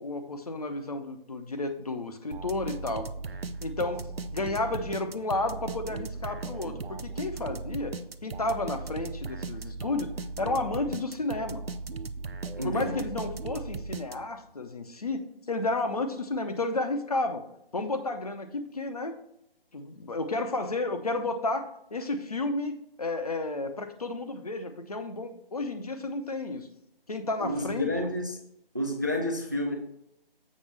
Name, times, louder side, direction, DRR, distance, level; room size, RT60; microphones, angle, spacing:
voice 1, 0.0-3.1 3.6-4.1 4.3-7.9 8.2-11.6 12.6-17.4 17.7-19.1 19.7-26.7 27.1-27.9, left 2 dB, 40° left, 0.8 m, -32 dB
sound 1, 2.3-14.5, right 4 dB, 75° right, 0.6 m, -37 dB
voice 2, 12.6-13.0 27.4-28.4 28.7-29.7, left 1 dB, 20° right, 0.5 m, -30 dB
7.4 x 6.4 x 3.3 m
figure-of-eight pair, 155°, 30 cm